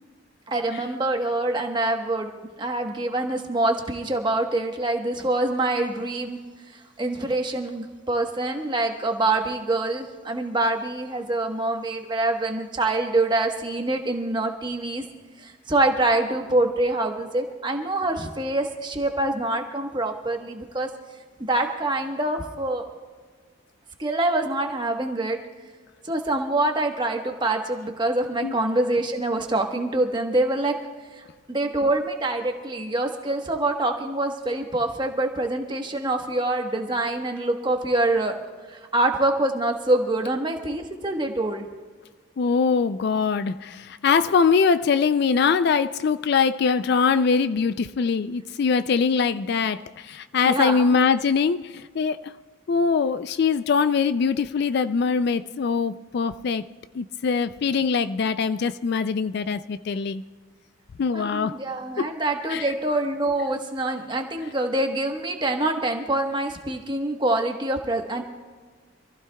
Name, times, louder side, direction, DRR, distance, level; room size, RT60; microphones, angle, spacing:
voice 1, 0.5-2.3 2.6-6.4 6.7-15.0 15.4-20.9 21.4-22.8 24.0-25.4 26.0-30.7 31.1-38.4 38.7-41.7 50.4-50.9 61.1-68.2, right 2 dB, 20° right, 1.1 m, -25 dB
voice 2, 42.4-52.3 52.7-56.7 56.9-60.2 61.0-61.6 62.0-62.1 62.5-62.8 64.4-64.5, left 5 dB, 50° left, 0.3 m, -23 dB
26.5 x 15.5 x 2.3 m
head